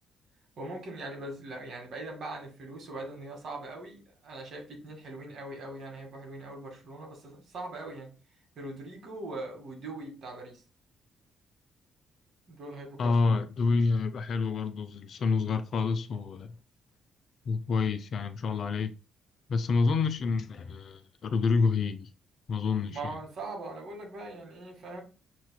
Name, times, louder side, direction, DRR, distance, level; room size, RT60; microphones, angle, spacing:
voice 1, 0.6-8.1 8.6-10.6 12.5-13.2 22.9-25.0, right 2 dB, 60° right, 1.8 m, -41 dB
voice 2, 13.0-16.6 17.5-18.9 19.5-22.1 22.5-23.2, left 4 dB, 60° left, 0.5 m, -28 dB
6.5 x 3.1 x 2.2 m
cardioid pair, 90°, 0 cm